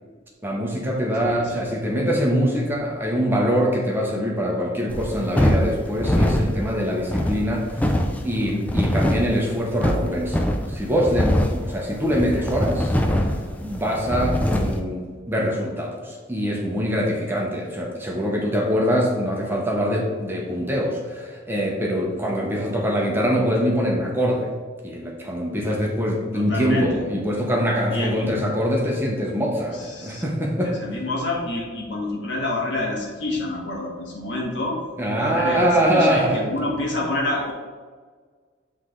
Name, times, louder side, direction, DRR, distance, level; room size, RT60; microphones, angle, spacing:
voice 1, 0.4-7.9 8.2-10.4 10.7-13.3 13.6-15.0 15.3-24.5 24.8-30.7 35.0-36.4, equal, 10° right, -2 dB, 0.8 m, -23 dB
voice 2, 1.2-1.6 26.3-27.0 27.9-28.3 29.8-30.3 30.6-34.8 35.1-37.5, left 2 dB, 65° left, -2 dB, 1.5 m, -28 dB
sound 1, 4.9-14.8, equal, 10° left, 0.4 m, -23 dB
8.0 x 3.3 x 3.8 m, 1.5 s
head